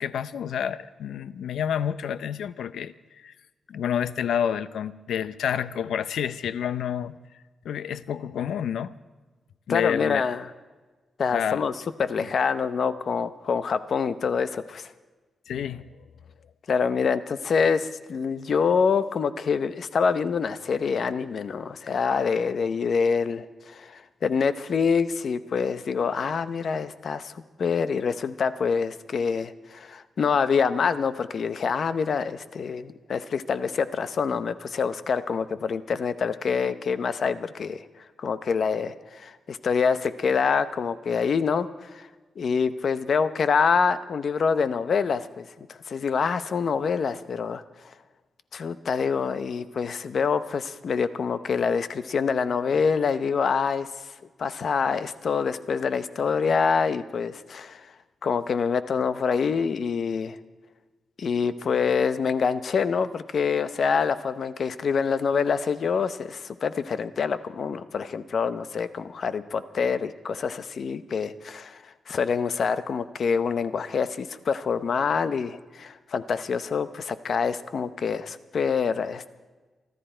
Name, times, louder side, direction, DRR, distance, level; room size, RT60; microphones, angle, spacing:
voice 1, 0.0-3.3 3.7-7.2 7.6-9.0 9.7-10.2 11.3-11.6 12.2-12.3 15.5-15.9, left 8 dB, 90° left, 14 dB, 0.6 m, -29 dB
voice 2, 9.7-10.5 11.2-11.7 12.0-14.9 16.7-37.8 38.2-42.1 42.4-47.6 48.5-54.1 54.4-57.9 58.2-60.4 61.2-79.3, left 6 dB, 45° left, 12 dB, 0.7 m, -26 dB
24.5 x 13.5 x 4.4 m, 1.3 s
wide cardioid pair, 170°, 0 cm